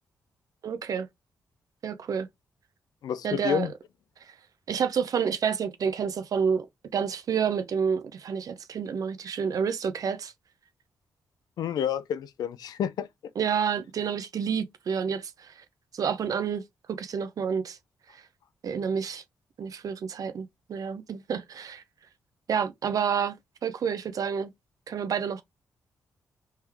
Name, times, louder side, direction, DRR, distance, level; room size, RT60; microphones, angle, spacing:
voice 1, 0.6-1.1 1.8-2.3 3.2-3.7 4.3-4.4 4.7-6.7 6.9-10.3 13.4-15.6 15.9-16.6 16.9-17.8 18.1-18.2 18.6-19.2 19.6-21.8 22.5-23.4 23.6-24.5 24.9-25.4, right 7 dB, 60° right, 0.6 m, -29 dB
voice 2, 3.0-3.7 11.6-13.1, left 9 dB, 75° left, 0.4 m, -29 dB
3.5 x 3.2 x 2.9 m
cardioid pair, 65°, 7 cm